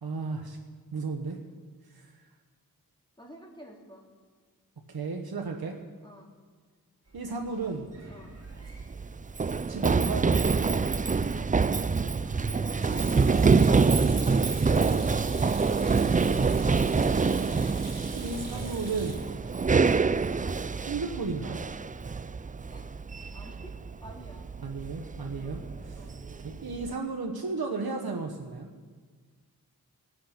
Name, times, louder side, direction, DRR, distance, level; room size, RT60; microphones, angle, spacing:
voice 1, 0.0-0.6 0.9-1.4 1.9-2.1 4.9-5.8 7.1-7.9 9.7-10.6 18.1-19.2 20.8-21.6 24.6-26.1 26.4-28.7, right 4 dB, 75° right, 1 dB, 1.2 m, -34 dB
voice 2, 3.2-4.0 5.6-5.8 6.0-6.3 8.1-8.4 22.7-22.9 23.3-24.5 25.4-25.6 25.9-26.2, equal, 15° left, -1 dB, 2.8 m, -50 dB
Sink (filling or washing), 7.1-20.8, right 2 dB, 45° right, 3.5 m, -47 dB
Run, 8.4-26.9, right 4 dB, 20° right, 0.4 m, -26 dB
20.0 x 8.5 x 5.8 m, 1.5 s
wide cardioid pair, 55°, 37 cm